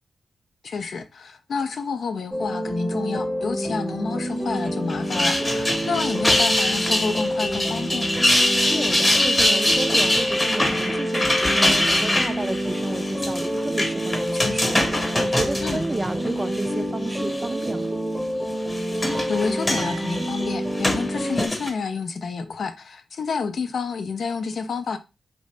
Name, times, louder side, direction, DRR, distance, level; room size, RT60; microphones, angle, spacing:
voice 1, 0.6-8.1 14.3-14.8 15.6-15.8 18.9-25.0, left 5 dB, 70° left, 0.4 m, -29 dB
sound 1, 2.3-21.5, equal, 5° right, 0.7 m, -28 dB
sound 2, 4.9-16.7 17.1-17.7 18.5-21.7, left 1 dB, 25° left, 0.9 m, -24 dB
voice 2, 8.6-17.9, right 2 dB, 30° right, 0.3 m, -32 dB
2.7 x 2.0 x 3.2 m
supercardioid pair, 45°, 0 cm